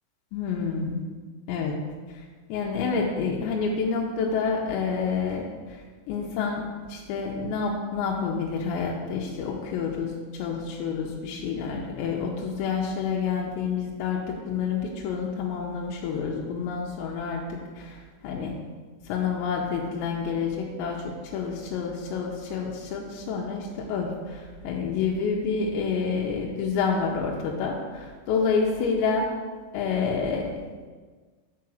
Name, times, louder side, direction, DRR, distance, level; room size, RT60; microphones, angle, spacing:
voice 1, 0.3-1.0 1.5-1.8 2.1-2.2 2.5-18.6 19.1-29.3 29.7-30.5, left 5 dB, 85° left, -1 dB, 2.9 m, -28 dB
5.8 x 4.7 x 6.2 m, 1.5 s
omnidirectional pair, 5.2 m